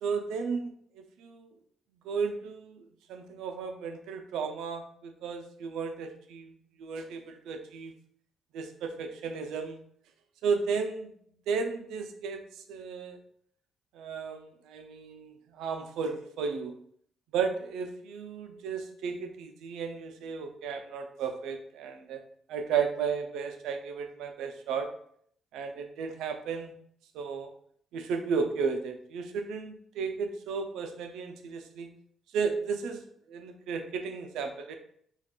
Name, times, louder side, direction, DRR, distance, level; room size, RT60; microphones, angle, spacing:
voice 1, 0.0-1.5 2.0-2.8 3.1-6.5 6.8-7.9 8.5-9.8 10.4-11.1 11.5-13.2 13.9-16.7 17.3-22.2 22.5-24.9 25.5-26.7 27.1-27.5 27.9-31.9 32.3-33.0 33.3-34.8, right 5 dB, 90° right, 6 dB, 0.4 m, -34 dB
2.3 x 2.3 x 3.6 m, 0.63 s
cardioid pair, 90°, 0 cm